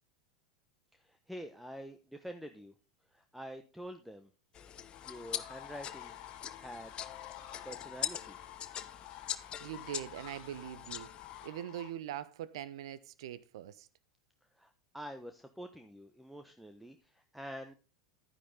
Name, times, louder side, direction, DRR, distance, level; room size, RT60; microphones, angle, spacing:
voice 1, 0.9-2.7 3.1-4.3 4.7-6.1 6.6-6.9 7.6-8.4 14.6-17.7, equal, ahead, 1.1 m, -47 dB
sound 1, 4.5-11.5, left 9 dB, 35° left, 0.9 m, -43 dB
sound 2, 4.9-11.9, left 13 dB, 50° left, 2.3 m, -50 dB
voice 2, 9.6-11.1 11.4-13.9, right 11 dB, 65° right, 1.0 m, -42 dB
11.5 x 9.9 x 3.8 m
figure-of-eight pair, 85°, 3 cm